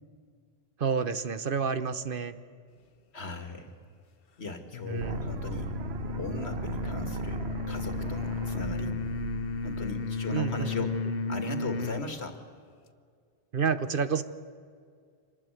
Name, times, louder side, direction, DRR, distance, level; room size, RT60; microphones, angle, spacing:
voice 1, 0.8-2.3 4.9-5.2 10.3-11.1 13.5-14.2, right 6 dB, 55° right, 12 dB, 1.2 m, -29 dB
voice 2, 3.1-3.7 4.4-5.7 6.1-8.9 9.6-10.9 11.3-12.4, left 2 dB, 85° left, 7 dB, 2.6 m, -38 dB
sound 1, 4.7-12.1, left 5 dB, 65° left, 1.1 m, -34 dB
sound 2, 5.0-11.0, right 8 dB, 80° right, 1.1 m, -38 dB
25.5 x 19.0 x 9.3 m, 2.1 s
omnidirectional pair, 1.1 m